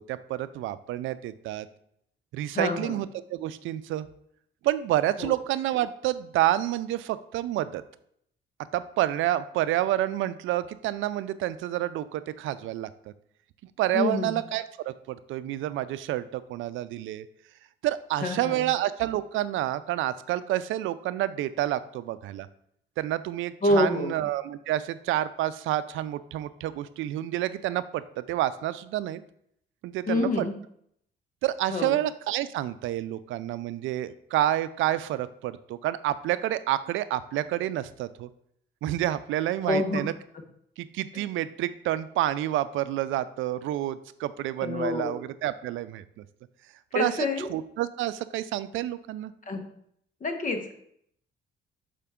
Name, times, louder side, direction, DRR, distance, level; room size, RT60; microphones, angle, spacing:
voice 1, 0.0-1.7 2.3-4.1 4.6-7.8 8.7-12.9 13.8-17.3 17.8-22.5 23.0-29.2 29.8-30.5 31.4-38.3 38.8-40.1 40.8-46.0 46.9-49.3, right 13 dB, 85° right, 14 dB, 0.4 m, -29 dB
voice 2, 2.5-2.9 5.2-5.3 13.9-14.3 18.2-18.6 23.6-24.1 30.1-30.6 31.7-32.0 39.7-40.0 44.6-45.2 46.9-47.5 49.5-49.6 50.2-50.7, left 2 dB, 40° left, 5 dB, 1.2 m, -27 dB
6.7 x 5.0 x 3.6 m, 0.70 s
cardioid pair, 90°, 20 cm